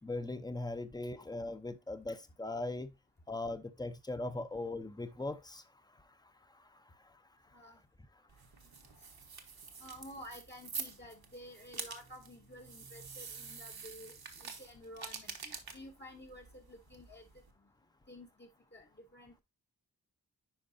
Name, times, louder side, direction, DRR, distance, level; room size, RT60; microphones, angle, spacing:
voice 1, 0.0-2.9 3.3-7.6, left 2 dB, 10° left, 0.7 m, -40 dB
sound 1, 8.3-17.5, right 5 dB, 75° right, 1.3 m, -47 dB
voice 2, 9.8-17.3 18.1-19.4, equal, 30° left, 1.1 m, -52 dB
10.5 x 4.6 x 2.6 m
wide cardioid pair, 90°, 37 cm